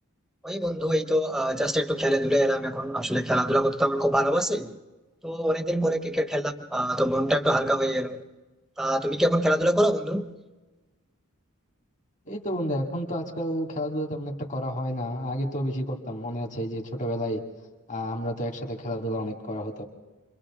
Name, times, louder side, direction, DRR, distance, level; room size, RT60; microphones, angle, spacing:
voice 1, 0.4-4.8 5.2-8.2 8.8-10.3, equal, ahead, 1.0 m, -24 dB
voice 2, 12.3-17.4 17.9-19.8, equal, 35° left, 2.5 m, -30 dB
29.5 x 23.5 x 3.8 m
head